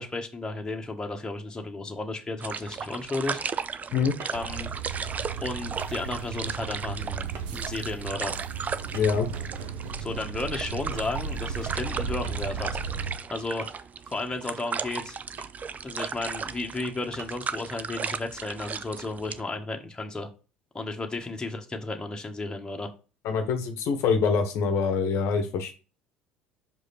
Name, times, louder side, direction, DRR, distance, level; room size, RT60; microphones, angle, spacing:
voice 1, 0.0-3.4 4.3-4.7 5.4-8.3 10.0-12.8 13.3-13.7 14.1-15.2 15.8-20.3 20.7-22.9, left 2 dB, 15° left, 1.4 m, -33 dB
sound 1, 2.4-19.4, right 6 dB, 30° right, 0.5 m, -36 dB
sound 2, 4.2-4.4 5.8-6.0 6.3-6.4 7.3-7.5 8.9-9.3 10.9-11.2 11.5-11.6 12.2-12.6 13.6-14.1 15.4-15.6 16.2-16.3 17.2-17.3, right 5 dB, 50° right, 1.5 m, -44 dB
sound 3, 4.3-13.2, right 6 dB, 65° right, 0.9 m, -35 dB
voice 2, 8.9-9.3 23.2-25.7, left 5 dB, 55° left, 1.0 m, -25 dB
5.6 x 4.9 x 4.2 m
figure-of-eight pair, 60°, 5 cm